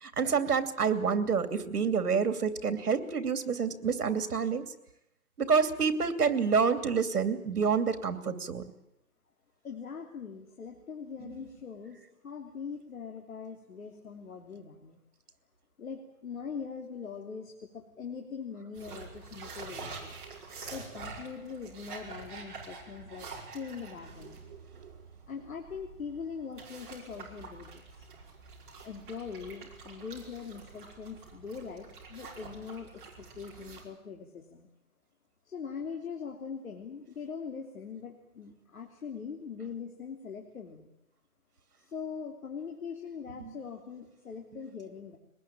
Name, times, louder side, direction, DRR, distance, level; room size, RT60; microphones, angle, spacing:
voice 1, 0.0-4.7 5.4-8.6 43.4-43.5, right 5 dB, 80° right, 10 dB, 3.0 m, -28 dB
voice 2, 9.6-15.0 15.8-20.1 20.7-23.3 23.5-24.4 25.3-28.0 28.8-34.7 35.4-40.9 41.8-45.2, left 6 dB, 65° left, 2 dB, 3.3 m, -42 dB
sound 1, 18.7-33.8, right 4 dB, 35° right, 5.4 m, -47 dB
23.5 x 20.0 x 9.0 m, 0.82 s
hypercardioid pair, 175°, 45 cm